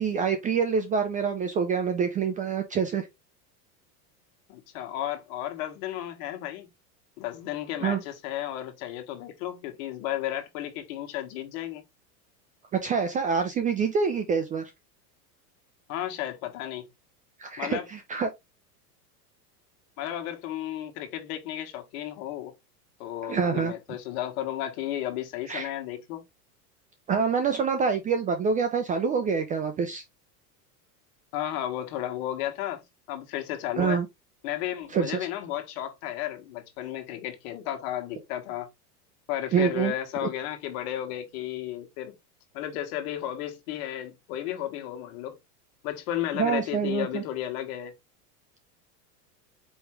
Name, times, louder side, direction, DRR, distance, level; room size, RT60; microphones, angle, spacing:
voice 1, 0.0-3.1 7.8-8.0 12.7-14.7 17.4-18.3 23.3-23.7 25.5-25.7 27.1-30.0 33.8-34.1 34.9-35.3 39.5-39.9 46.4-47.2, right 6 dB, 20° right, 0.3 m, -26 dB
voice 2, 4.5-6.7 7.2-11.8 15.9-16.8 17.6-17.8 20.0-22.5 23.0-26.2 31.3-32.8 33.1-34.0 34.4-38.7 39.3-42.1 42.5-45.4 45.8-47.9, left 12 dB, 60° left, 1.4 m, -33 dB
4.7 x 3.1 x 3.1 m
hypercardioid pair, 110°, 48 cm